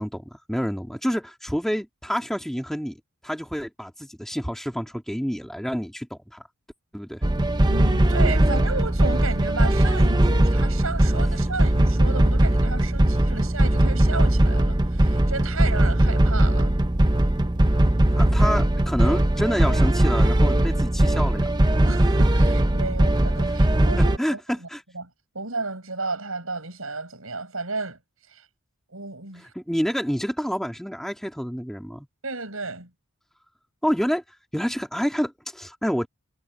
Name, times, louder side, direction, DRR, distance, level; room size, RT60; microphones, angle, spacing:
voice 1, 0.0-3.0 3.2-6.4 6.9-7.2 18.2-21.5 24.2-24.8 29.6-32.1 33.8-34.2 34.5-36.1, equal, ahead, 2.2 m, -28 dB
sound 1, 7.2-24.2, right 1 dB, 20° right, 0.8 m, -19 dB
voice 2, 7.7-16.8 21.9-24.7 24.9-25.0 25.3-28.0 28.3-28.4 28.9-29.5 32.2-32.9, right 3 dB, 75° right, 7.1 m, -33 dB
head